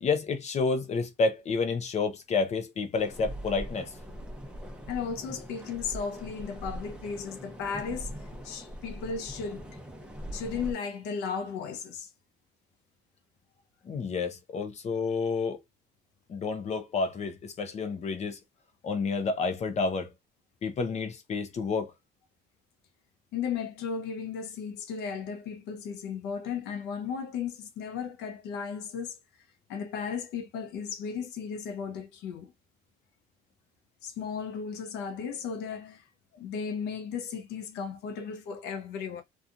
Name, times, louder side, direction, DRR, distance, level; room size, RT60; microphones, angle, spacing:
voice 1, 0.0-3.9 13.9-15.6 16.3-18.4 18.8-20.1 20.6-21.9, left 4 dB, 40° left, 0.6 m, -29 dB
sound 1, 2.9-10.7, equal, 5° right, 0.8 m, -42 dB
voice 2, 4.9-8.1 8.4-9.8 10.3-12.1 23.3-29.2 29.7-32.5 34.0-36.0 36.3-39.2, left 6 dB, 90° left, 0.8 m, -35 dB
2.8 x 2.4 x 2.5 m
cardioid pair, 110°, 17 cm